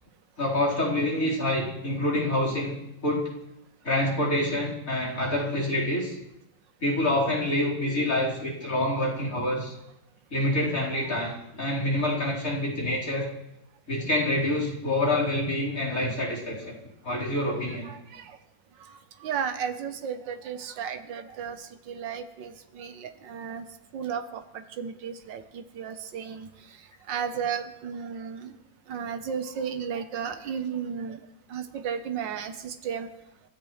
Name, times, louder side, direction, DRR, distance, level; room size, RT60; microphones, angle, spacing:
voice 1, 0.4-3.3 3.8-6.1 6.8-9.7 10.3-13.2 13.9-16.7 17.0-17.9, left 1 dB, 45° left, -5 dB, 4.8 m, -27 dB
voice 2, 17.7-18.4 18.8-23.7 23.9-28.6 28.9-33.1, right 7 dB, 85° right, 8 dB, 1.7 m, -34 dB
29.5 x 14.0 x 3.2 m, 0.87 s
omnidirectional pair, 1.9 m